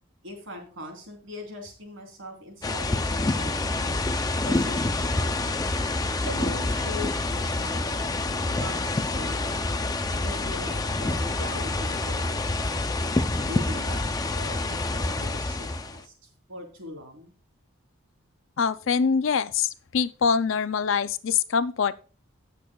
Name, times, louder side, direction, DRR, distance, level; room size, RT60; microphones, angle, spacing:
voice 1, 0.2-3.9 4.4-5.5 6.2-9.7 10.1-12.9 13.3-16.1 16.5-17.3, left 1 dB, 75° right, 3.5 m, -41 dB
sound 1, 2.6-16.0, left 2 dB, 20° left, 0.5 m, -27 dB
voice 2, 18.6-22.0, left 6 dB, 70° left, 0.5 m, -24 dB
17.0 x 6.8 x 2.3 m
head